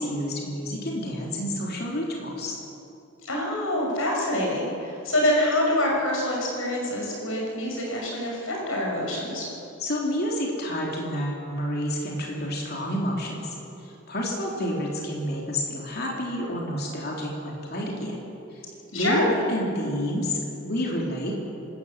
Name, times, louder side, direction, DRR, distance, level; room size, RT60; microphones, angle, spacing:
voice 1, 0.0-2.6 9.8-13.5 13.8-18.2 18.9-19.2 19.5-21.3, equal, 50° left, -2 dB, 3.6 m, -29 dB
voice 2, 3.2-9.5 18.9-19.3, left 1 dB, 75° left, -1 dB, 6.1 m, -26 dB
26.0 x 13.5 x 8.4 m, 2.8 s
head